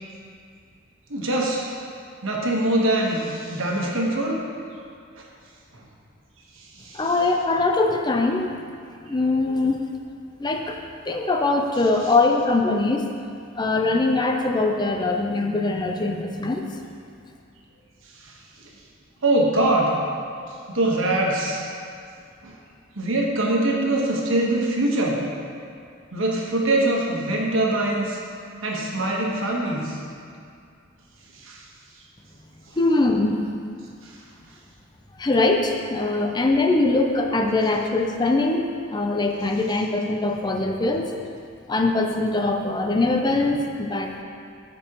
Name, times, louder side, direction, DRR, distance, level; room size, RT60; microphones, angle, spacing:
voice 1, 1.1-1.7 2.2-4.4 5.2-5.3 5.7-5.8 6.6-7.1 18.2-18.4 19.2-20.0 20.7-21.7 22.4-22.6 22.9-25.2 26.1-28.2 28.6-30.0 31.3-31.6 34.0-34.2 36.0-36.4, right 1 dB, 80° right, -2 dB, 1.3 m, -23 dB
voice 2, 6.9-8.5 9.0-9.8 10.4-10.8 11.1-13.1 13.6-16.6 32.8-33.4 35.2-41.1 41.7-44.2, left 2 dB, 20° left, 3 dB, 0.5 m, -22 dB
13.5 x 5.2 x 3.0 m, 2.3 s
head